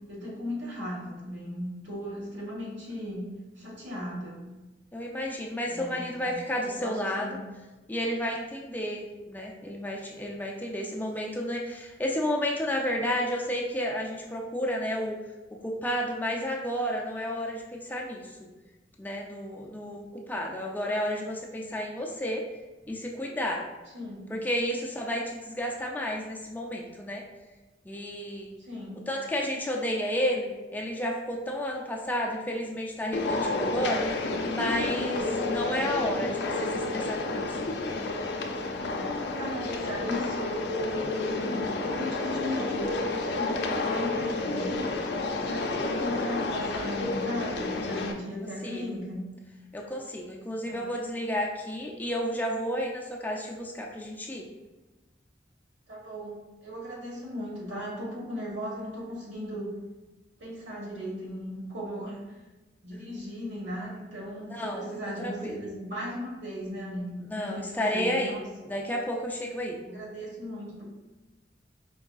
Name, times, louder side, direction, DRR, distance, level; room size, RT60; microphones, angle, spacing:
voice 1, 0.1-3.3 3.6-4.4 5.7-7.4 23.9-24.3 28.6-29.1 38.8-40.5 41.0-44.9 45.4-49.2 50.7-51.0 55.9-59.7 60.4-62.2 62.8-68.4 69.9-70.8, equal, 85° right, -3 dB, 1.3 m, -37 dB
voice 2, 4.9-7.4 7.9-15.2 15.6-18.5 19.0-22.4 22.9-23.6 24.3-27.2 27.8-28.5 29.1-34.2 34.5-37.6 43.6-43.8 48.6-48.8 49.7-54.5 64.5-64.9 65.2-65.6 67.3-68.4 68.7-69.8, equal, 10° left, -1 dB, 0.4 m, -31 dB
sound 1, 33.1-48.1, left 2 dB, 65° left, 0.5 m, -30 dB
4.7 x 3.5 x 2.3 m, 1.1 s
head